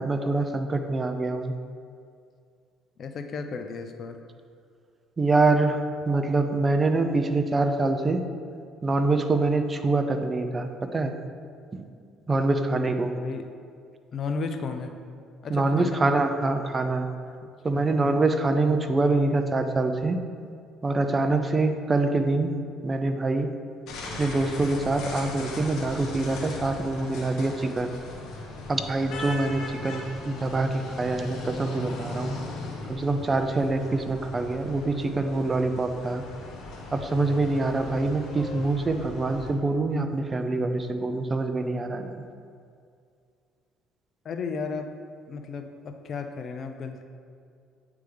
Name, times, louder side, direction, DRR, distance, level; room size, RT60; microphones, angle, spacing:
voice 1, 0.0-1.5 5.2-8.2 8.8-11.1 11.7-11.9 12.3-13.1 15.5-17.1 17.6-20.2 20.8-22.5 22.8-23.5 24.2-28.0 28.7-32.4 32.9-36.2 36.9-42.2, right 2 dB, 25° right, 7 dB, 0.5 m, -25 dB
voice 2, 3.0-4.2 13.1-13.5 14.1-14.9 15.4-16.1 17.4-17.9 44.2-44.9 45.3-47.0, left 4 dB, 50° left, 6 dB, 0.5 m, -34 dB
sound 1, 23.9-39.5, left 2 dB, 70° left, 1.0 m, -38 dB
9.1 x 3.5 x 3.3 m, 2.3 s
supercardioid pair, 85°, 0 cm